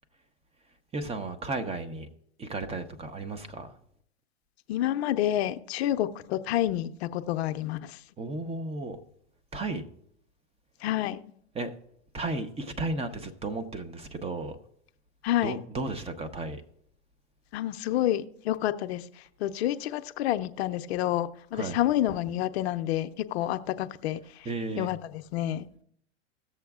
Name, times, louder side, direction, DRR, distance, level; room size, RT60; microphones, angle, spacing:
voice 1, 0.9-2.1 2.4-3.7 8.2-9.0 9.5-9.8 11.5-11.7 12.1-14.6 15.4-16.6 21.5-21.8 24.4-24.9, right 2 dB, 15° right, 0.7 m, -34 dB
voice 2, 4.7-8.0 10.8-11.2 15.2-15.6 17.5-19.0 19.4-24.2 24.8-25.7, left 13 dB, 65° left, 0.6 m, -28 dB
17.5 x 7.0 x 2.4 m
hypercardioid pair, 115°, 35 cm